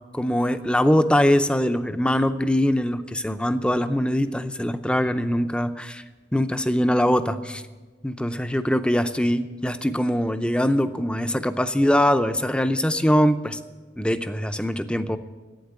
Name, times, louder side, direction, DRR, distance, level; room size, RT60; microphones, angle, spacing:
voice 1, 0.1-6.0 6.3-7.6 8.0-13.6 14.0-15.2, equal, 5° left, 10 dB, 0.5 m, -22 dB
11.5 x 9.0 x 8.8 m, 1.3 s
head